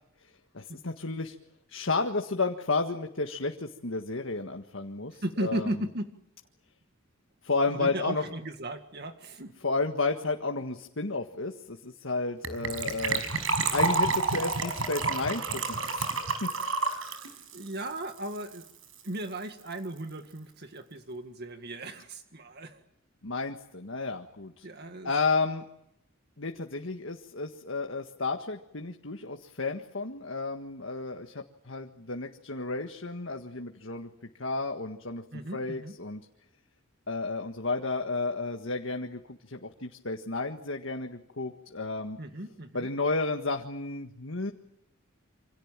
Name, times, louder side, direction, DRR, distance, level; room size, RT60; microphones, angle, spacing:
voice 1, 0.5-1.4 1.7-5.9 7.4-8.2 9.6-13.2 13.7-16.1 16.4-16.5 23.2-24.7 25.0-25.7 26.4-34.1 34.4-35.2 35.5-36.2 37.1-42.2 42.7-44.5, left 3 dB, 65° left, 4 dB, 1.7 m, -32 dB
voice 2, 5.1-6.2 7.7-9.5 17.1-17.2 17.5-18.7 19.0-22.8 24.6-25.1 35.3-35.9 42.2-42.9, right 1 dB, 50° right, 7 dB, 1.9 m, -36 dB
Gurgling / Trickle dribble / Fill (with liquid), 12.4-18.7 18.9-19.0 19.2-19.4 19.7-19.8, right 4 dB, 80° right, 5.5 m, -30 dB
28.0 x 26.5 x 7.6 m, 0.76 s
head